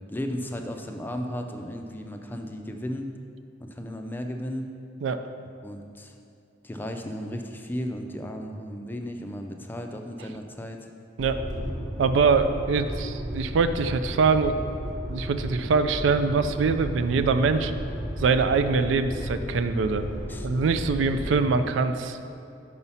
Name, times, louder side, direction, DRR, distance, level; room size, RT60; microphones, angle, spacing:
voice 1, 0.1-3.1 3.6-4.7 5.6-6.1 6.6-10.9 20.3-20.5, equal, 10° left, 4 dB, 0.4 m, -35 dB
sound 1, 11.2-21.5, equal, 40° right, 0.9 m, -34 dB
voice 2, 12.0-14.6 15.1-17.7 18.2-20.1 20.4-22.2, right 4 dB, 75° right, 10 dB, 0.4 m, -23 dB
5.5 x 4.9 x 5.5 m, 2.6 s
head